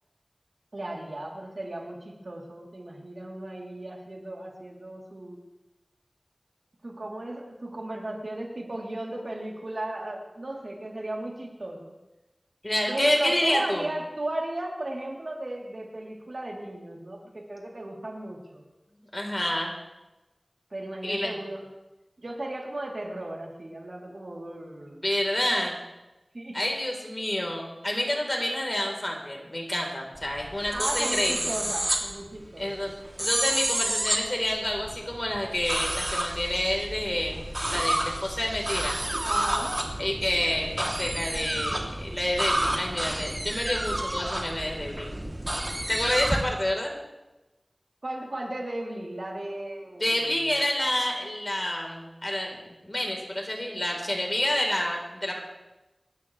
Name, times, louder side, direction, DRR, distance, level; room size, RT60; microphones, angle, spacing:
voice 1, 0.7-5.4 6.8-11.9 12.9-18.6 20.7-21.6 22.2-25.0 26.3-26.6 30.7-32.7 39.2-39.7 48.0-50.3, right 1 dB, 70° right, -1 dB, 3.3 m, -35 dB
voice 2, 12.6-13.9 19.1-19.7 21.0-21.4 24.9-25.8 26.5-31.5 32.6-32.9 33.2-37.5 37.7-39.0 40.0-45.1 45.9-46.9 50.0-55.4, left 1 dB, 35° left, 1 dB, 4.0 m, -28 dB
sound 1, 30.2-46.4, right 1 dB, 35° right, 2.9 m, -30 dB
26.0 x 13.0 x 3.3 m, 1.0 s
wide cardioid pair, 40°, 0 cm